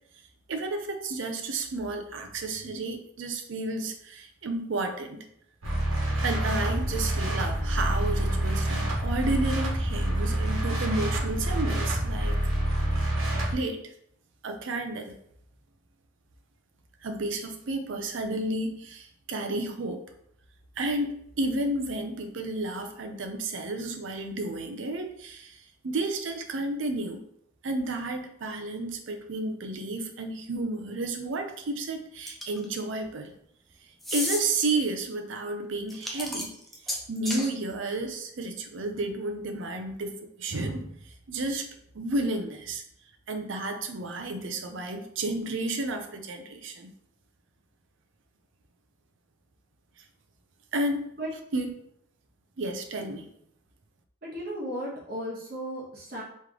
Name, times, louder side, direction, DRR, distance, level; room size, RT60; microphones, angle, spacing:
voice 1, 0.5-5.2 6.2-12.4 13.3-13.9 14.4-15.2 17.0-20.0 20.8-27.2 27.6-33.3 34.1-36.5 36.9-41.7 41.9-42.8 43.3-46.9 50.7-51.1 51.5-51.7 52.6-53.3, right 2 dB, 70° right, 5 dB, 0.6 m, -32 dB
sound 1, 5.6-13.5, right 1 dB, 85° right, 1.3 m, -27 dB
sound 2, 32.3-32.7 34.0-34.4 35.9-37.5, left 1 dB, ahead, 0.4 m, -32 dB
voice 2, 54.2-56.2, equal, 45° right, -4 dB, 1.2 m, -35 dB
3.3 x 3.1 x 3.7 m, 0.70 s
head